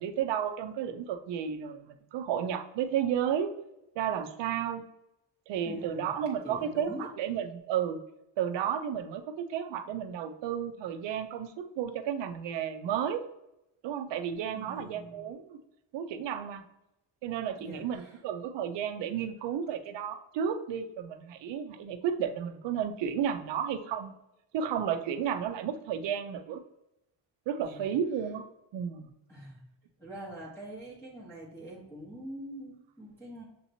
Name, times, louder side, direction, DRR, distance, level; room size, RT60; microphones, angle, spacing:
voice 1, 0.0-3.5 4.0-4.8 5.5-8.0 8.4-13.3 13.8-15.6 15.9-16.6 17.2-24.1 24.5-26.6 27.5-28.4 28.7-29.1, right 8 dB, 65° right, 8 dB, 0.6 m, -32 dB
voice 2, 5.6-6.1 6.4-7.1 14.5-15.2 17.6-18.2 27.6-27.9 29.3-29.6 30.0-33.4, right 1 dB, 5° left, -8 dB, 1.1 m, -44 dB
6.8 x 2.9 x 2.7 m, 0.88 s
cardioid pair, 155°, 47 cm